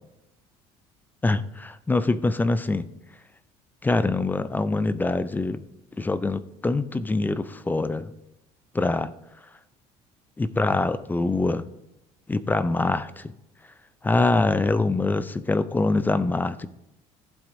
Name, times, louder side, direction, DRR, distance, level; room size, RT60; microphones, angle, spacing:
voice 1, 1.2-2.9 3.8-5.6 6.0-8.1 8.7-9.1 10.4-11.7 12.3-13.2 14.0-16.7, left 3 dB, 15° left, 15 dB, 0.4 m, -24 dB
15.0 x 8.0 x 2.7 m, 0.87 s
supercardioid pair, 100°, 14 cm